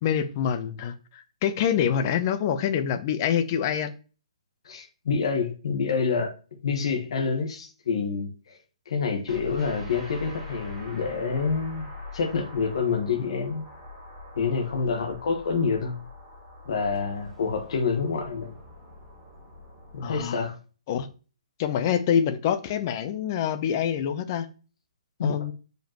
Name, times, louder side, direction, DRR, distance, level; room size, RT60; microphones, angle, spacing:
voice 1, 0.0-3.9 20.0-20.4 20.9-21.1 21.6-24.5 25.2-25.5, left 8 dB, 30° left, 0.7 m, -26 dB
voice 2, 4.6-6.3 6.6-8.6 8.9-11.9 12.1-13.7 14.4-16.0 16.6-18.5 19.9-20.6 25.2-25.4, left 5 dB, 55° left, 1.5 m, -27 dB
sound 1, 9.3-20.2, left 2 dB, 5° right, 2.8 m, -43 dB
7.1 x 5.3 x 3.0 m
hypercardioid pair, 160°, 3 cm